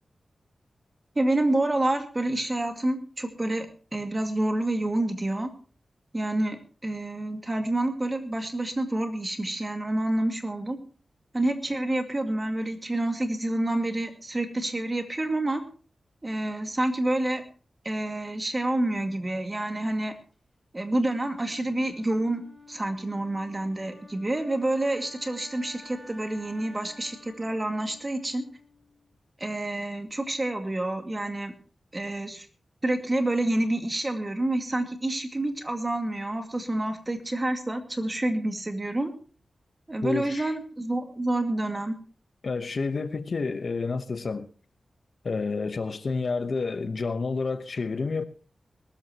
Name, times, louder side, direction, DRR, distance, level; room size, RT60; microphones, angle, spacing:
voice 1, 1.2-5.5 6.1-10.8 11.3-15.6 16.2-17.4 17.8-20.1 20.7-28.4 29.4-31.5 31.9-32.5 32.8-39.1 39.9-42.0, right 1 dB, 25° right, 2.2 m, -28 dB
Wind instrument woodwind instrument, 21.0-29.0, left 2 dB, 5° right, 4.6 m, -51 dB
voice 2, 40.0-40.5 42.4-44.5 45.2-48.2, left 4 dB, 60° left, 1.0 m, -29 dB
21.5 x 13.0 x 3.0 m
wide cardioid pair, 95°, 0 cm